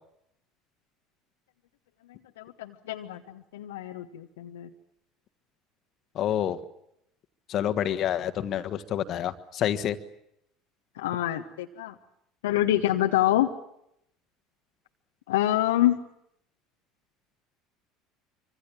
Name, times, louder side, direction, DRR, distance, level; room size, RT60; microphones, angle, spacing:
voice 1, 2.4-4.7 11.0-11.9 12.4-13.5 15.3-16.0, left 13 dB, 70° left, 4 dB, 1.2 m, -26 dB
voice 2, 6.1-6.6 7.5-10.0, left 10 dB, 45° left, 11 dB, 1.6 m, -28 dB
26.0 x 25.0 x 7.5 m, 0.77 s
figure-of-eight pair, 65°, 0 cm